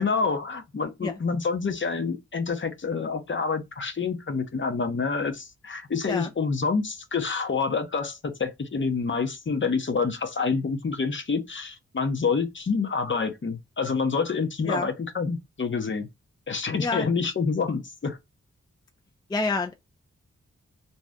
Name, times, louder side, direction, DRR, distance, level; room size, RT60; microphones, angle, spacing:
voice 1, 0.0-16.1 16.5-18.2, left 5 dB, 40° left, 0.7 m, -27 dB
voice 2, 19.3-19.7, left 3 dB, 15° left, 0.4 m, -28 dB
2.7 x 2.2 x 3.4 m
cardioid pair, 45°, 29 cm